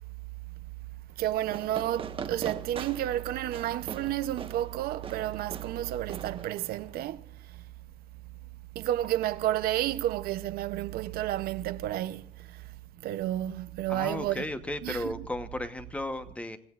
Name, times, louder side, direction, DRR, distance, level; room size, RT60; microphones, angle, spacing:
voice 1, 1.2-7.6 8.7-12.7 13.0-14.5 14.8-15.3, right 13 dB, 60° right, 0.6 m, -31 dB
Fireworks, 1.4-7.0, right 6 dB, 30° right, 1.3 m, -42 dB
voice 2, 13.9-16.6, left 1 dB, 5° left, 0.9 m, -35 dB
29.0 x 16.5 x 2.4 m
cardioid pair, 160°, 17 cm